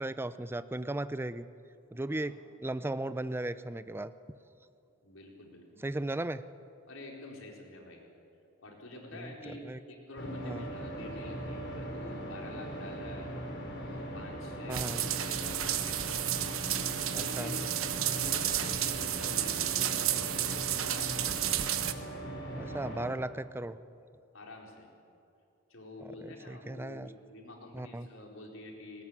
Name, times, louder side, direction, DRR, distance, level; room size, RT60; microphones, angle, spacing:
voice 1, 0.0-1.5 1.9-4.1 5.8-6.4 9.1-9.3 9.6-9.8 10.4-10.7 14.7-15.0 17.1-17.5 22.6-23.8 26.2-27.1 27.7-28.1, right 1 dB, 10° right, 13 dB, 0.5 m, -36 dB
voice 2, 5.0-5.8 6.9-8.0 8.6-13.3 13.7-16.0 16.8-17.7 18.0-21.2 24.3-24.9 25.7-29.0, left 2 dB, 75° left, 0 dB, 4.3 m, -47 dB
sound 1, 10.2-23.1, right 1 dB, 60° left, 3.7 m, -40 dB
sound 2, 14.7-21.9, right 11 dB, 85° right, 1.1 m, -32 dB
20.0 x 18.0 x 9.8 m, 2.6 s
head